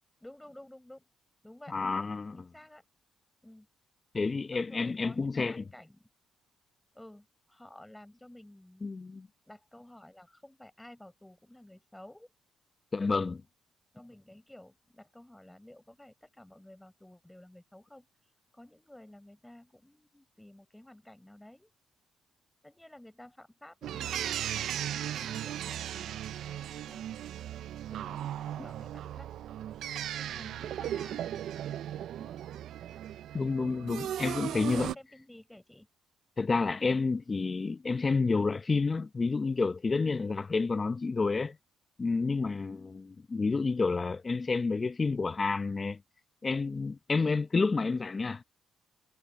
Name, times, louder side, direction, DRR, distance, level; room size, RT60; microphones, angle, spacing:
voice 1, 0.2-1.0 1.4-1.8 2.3-2.9 3.4-3.7 4.5-6.1 6.9-8.9 9.5-12.3 13.9-18.1 18.5-21.7 22.6-27.0 27.9-29.4 30.1-32.3 34.5-35.9 40.0-40.2, left 1 dB, 5° left, 5.2 m, -53 dB
voice 2, 1.7-2.4 4.1-5.6 8.8-9.3 12.9-13.4 33.3-34.9 36.4-41.6 42.0-46.0 46.4-48.4, left 4 dB, 30° left, 0.7 m, -29 dB
sound 1, 23.8-34.9, right 11 dB, 75° right, 0.4 m, -37 dB
cardioid pair, 90°, 0 cm